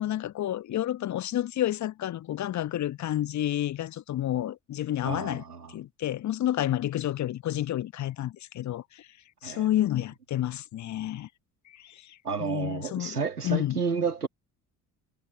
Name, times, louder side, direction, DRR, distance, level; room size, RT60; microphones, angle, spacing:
voice 1, 0.0-5.4 5.7-9.1 9.4-11.3 11.7-13.2 13.4-13.8, left 12 dB, 40° left, 1.2 m, -30 dB
voice 2, 5.0-5.7 9.4-9.7 12.2-14.3, right 5 dB, 85° right, 2.1 m, -31 dB
figure-of-eight pair, 55°, 45 cm